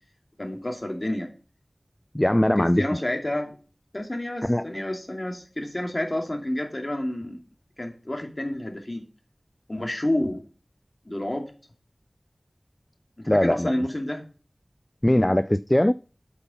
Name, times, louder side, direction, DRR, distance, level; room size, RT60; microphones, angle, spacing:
voice 1, 0.4-1.3 2.6-3.5 3.9-7.4 7.8-9.0 9.7-10.4 11.0-11.5 13.2-14.2, left 1 dB, 35° left, 3 dB, 2.6 m, -29 dB
voice 2, 2.1-2.8 4.4-4.7 13.3-13.7 15.0-15.9, left 1 dB, 20° left, 14 dB, 0.3 m, -20 dB
8.3 x 5.5 x 7.1 m, 0.36 s
wide cardioid pair, 55°, 0 cm